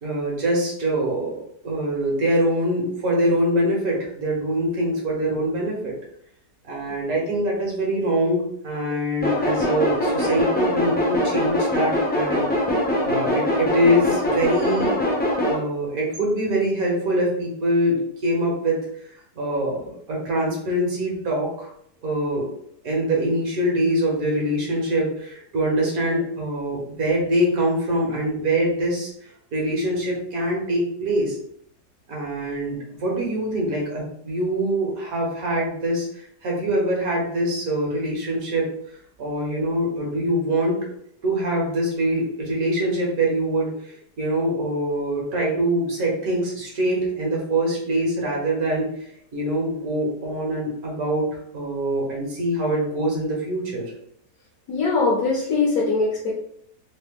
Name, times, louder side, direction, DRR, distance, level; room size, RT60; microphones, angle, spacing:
voice 1, 0.0-5.9 6.6-12.5 13.0-15.0 15.5-18.0 18.2-18.8 19.3-21.7 22.0-22.5 22.8-31.4 32.1-38.7 39.2-40.8 41.2-48.9 49.3-53.9, right 1 dB, 65° right, -3 dB, 1.5 m, -24 dB
sound 1, 9.2-15.6, left 1 dB, 10° left, 0.4 m, -22 dB
voice 2, 54.7-56.3, left 3 dB, 65° left, -4 dB, 1.2 m, -21 dB
3.8 x 2.1 x 3.6 m, 0.69 s
omnidirectional pair, 1.7 m